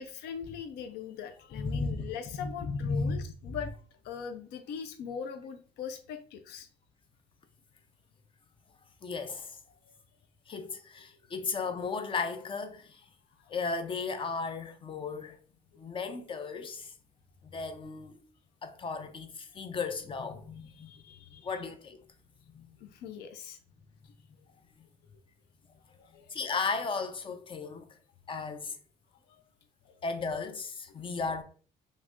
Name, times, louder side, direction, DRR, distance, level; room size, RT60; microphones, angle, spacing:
voice 1, 0.0-3.7 4.0-6.7 9.8-9.9 13.4-13.5 20.8-21.5 22.8-23.6 25.9-26.3 29.3-29.4 29.8-30.0 31.0-31.1, left 7 dB, 75° left, 0.5 m, -41 dB
voice 2, 1.5-1.9 2.4-3.2 9.0-9.6 10.5-13.0 13.5-15.4 15.8-16.9 17.4-18.2 18.6-20.9 21.4-22.0 22.5-22.7 26.3-27.9 28.3-28.8 30.0-31.4, left 4 dB, 30° left, 0.5 m, -35 dB
3.1 x 2.5 x 3.4 m
cardioid pair, 110°, 17 cm